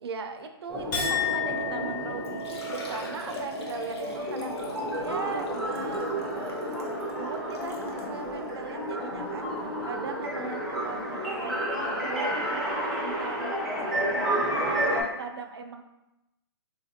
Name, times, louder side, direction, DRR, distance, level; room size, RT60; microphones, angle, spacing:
voice 1, 0.0-4.6 5.0-6.1 7.2-9.5 9.8-12.4 13.0-15.8, right 5 dB, 75° right, 7 dB, 0.4 m, -38 dB
sound 1, 0.7-15.0, equal, ahead, 0.4 m, -31 dB
Chink clink, 0.9-7.5 7.9-8.4, left 4 dB, 45° left, 1.2 m, -36 dB
Liquid, 2.2-8.1 8.8-8.9 9.4-9.5 11.1-11.2 11.4-11.5, left 2 dB, 90° left, 0.8 m, -42 dB
3.9 x 2.5 x 2.6 m, 0.92 s
hypercardioid pair, 165°, 14 cm